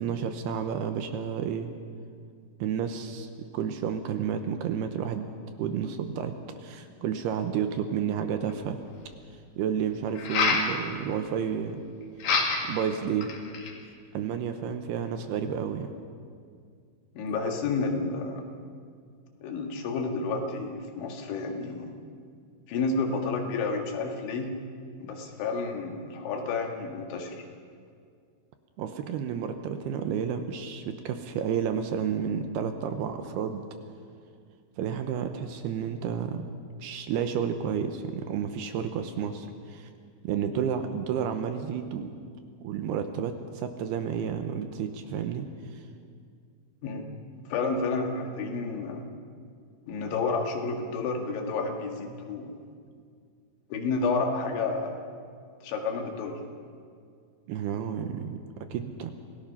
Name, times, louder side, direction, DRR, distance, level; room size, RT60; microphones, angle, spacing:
voice 1, 0.0-1.7 2.6-5.3 5.6-8.8 9.6-11.8 12.6-13.3 14.1-15.9 28.8-33.6 34.8-36.5 36.8-39.9 40.2-42.1 42.6-45.8 57.5-59.1, right 8 dB, 75° right, 7 dB, 2.6 m, -31 dB
sound 1, 8.5-8.6 10.2-10.7 12.2-12.8 13.2-13.8, left 4 dB, 60° left, 3.6 m, -26 dB
voice 2, 17.2-18.5 19.4-21.9 22.7-24.5 25.0-27.5 46.8-47.0 47.5-49.1 49.9-52.5 53.7-55.0 55.6-56.4, left 4 dB, 85° left, 2 dB, 4.3 m, -30 dB
27.0 x 17.5 x 5.7 m, 2.2 s
omnidirectional pair, 5.2 m